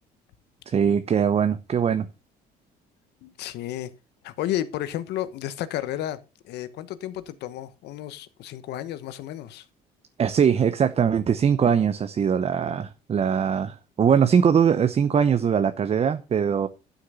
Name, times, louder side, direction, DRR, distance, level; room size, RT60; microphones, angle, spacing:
voice 1, 0.7-2.1 10.2-16.7, right 7 dB, 35° right, 0.9 m, -21 dB
voice 2, 3.2-3.9 4.2-6.2 6.4-9.6, left 12 dB, 80° left, 1.2 m, -32 dB
11.5 x 6.4 x 5.6 m
cardioid pair, 110°, 17 cm